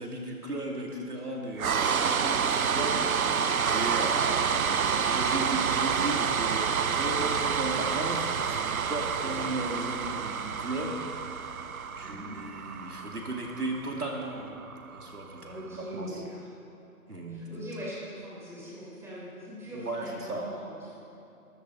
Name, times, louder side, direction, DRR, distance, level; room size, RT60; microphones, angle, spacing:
voice 1, 0.0-2.2 2.6-3.0 3.6-4.6 4.9-11.3 12.0-16.2 17.1-17.7 19.7-20.5, right 1 dB, 90° right, -1 dB, 2.8 m, -36 dB
sound 1, 1.6-15.7, right 6 dB, 65° right, 0.8 m, -28 dB
voice 2, 2.1-2.8 9.2-9.5 12.0-12.3 15.5-16.4 17.3-20.9, equal, 5° right, -7 dB, 4.3 m, -42 dB
23.0 x 13.0 x 4.1 m, 2.9 s
figure-of-eight pair, 135°, 44 cm